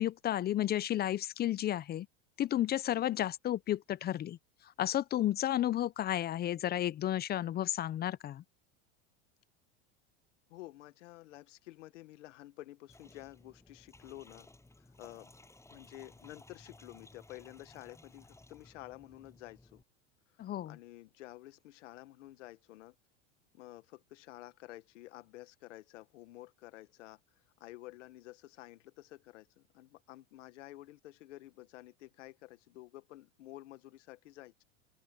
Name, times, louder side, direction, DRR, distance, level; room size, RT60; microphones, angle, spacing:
voice 1, 0.0-2.1 2.4-4.4 4.8-8.4 20.4-20.8, left 12 dB, 30° left, 0.5 m, -32 dB
voice 2, 2.9-3.2 10.5-14.5 15.0-15.3 15.7-19.8 20.6-22.9 23.5-27.2 27.6-34.6, left 16 dB, 85° left, 1.6 m, -51 dB
sound 1, 12.9-19.8, left 2 dB, 10° left, 7.2 m, -58 dB
open air
supercardioid pair, 115°, 36 cm